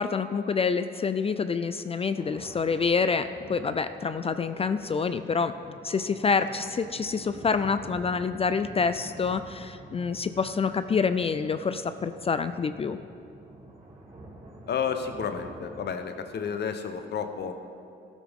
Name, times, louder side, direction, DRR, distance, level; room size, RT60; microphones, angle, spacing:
voice 1, 0.0-5.5 5.8-13.0, left 5 dB, 30° left, 11 dB, 0.4 m, -27 dB
sound 1, 2.2-16.0, right 2 dB, 30° right, 2.5 m, -47 dB
voice 2, 14.7-17.5, left 6 dB, 60° left, 7 dB, 1.0 m, -31 dB
14.0 x 12.5 x 3.6 m, 2.5 s
cardioid pair, 90°, 20 cm